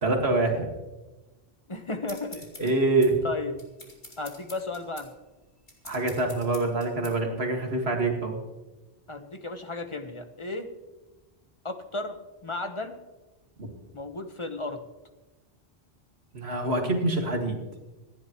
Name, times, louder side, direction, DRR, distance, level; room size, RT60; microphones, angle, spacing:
voice 1, 0.0-0.7 2.6-3.2 5.8-8.4 16.3-17.6, right 2 dB, 80° right, 2 dB, 2.2 m, -25 dB
voice 2, 1.7-2.7 3.2-3.6 4.2-5.1 9.1-10.7 11.6-12.2 12.4-13.0 13.9-14.8, left 2 dB, 30° left, 7 dB, 1.1 m, -34 dB
sound 1, 2.1-7.2, left 2 dB, 50° left, 2.7 m, -47 dB
26.0 x 10.5 x 3.1 m, 1.1 s
omnidirectional pair, 1.1 m